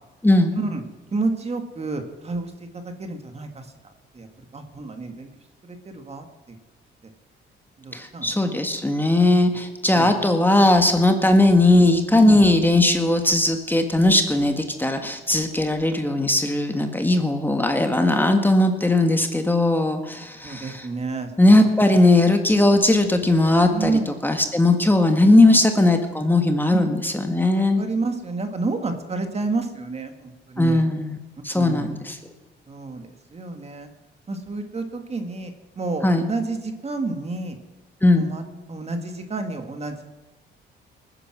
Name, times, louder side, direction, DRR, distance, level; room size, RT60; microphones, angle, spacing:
voice 1, 0.2-0.6 7.9-20.9 21.4-27.8 30.6-31.2 31.4-32.2 36.0-36.2 38.0-38.3, left 2 dB, 10° left, 5 dB, 1.6 m, -18 dB
voice 2, 1.1-2.5 2.8-3.7 4.1-4.3 4.5-5.3 5.6-6.6 7.8-8.3 9.9-10.2 12.2-12.4 20.4-21.3 21.9-22.2 23.7-24.0 24.8-24.9 25.3-26.0 26.7-26.9 27.4-30.8 31.5-31.9 32.7-33.9 34.3-37.6 38.2-38.4 38.7-40.0, right 3 dB, 30° right, 6 dB, 2.0 m, -30 dB
20.0 x 9.9 x 6.1 m, 1.2 s
cardioid pair, 90°, 20 cm